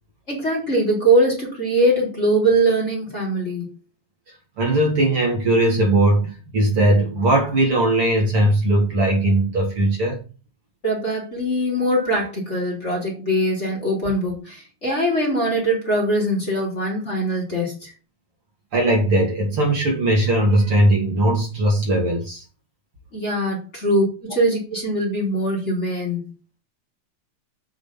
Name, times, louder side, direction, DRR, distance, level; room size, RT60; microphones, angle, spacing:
voice 1, 0.3-3.7 10.8-17.9 23.1-26.3, right 1 dB, 20° left, 4.3 m, -22 dB
voice 2, 4.6-10.2 18.7-22.4, right 1 dB, 45° right, 3.4 m, -19 dB
8.3 x 5.9 x 7.4 m
omnidirectional pair, 3.6 m